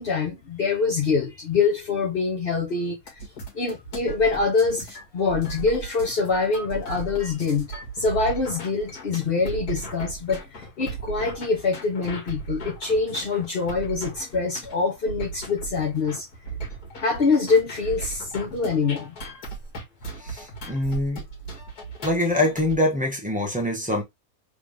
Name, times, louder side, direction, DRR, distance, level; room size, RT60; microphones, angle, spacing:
voice 1, 0.0-3.2 3.5-7.7 7.9-16.3 17.0-19.1, left 4 dB, 40° left, 1.2 m, -25 dB
sound 1, 3.1-22.8, right 3 dB, 75° left, 2.2 m, -37 dB
voice 2, 20.2-21.2 22.0-24.0, left 1 dB, 5° right, 1.1 m, -24 dB
3.7 x 3.6 x 3.2 m
omnidirectional pair, 1.6 m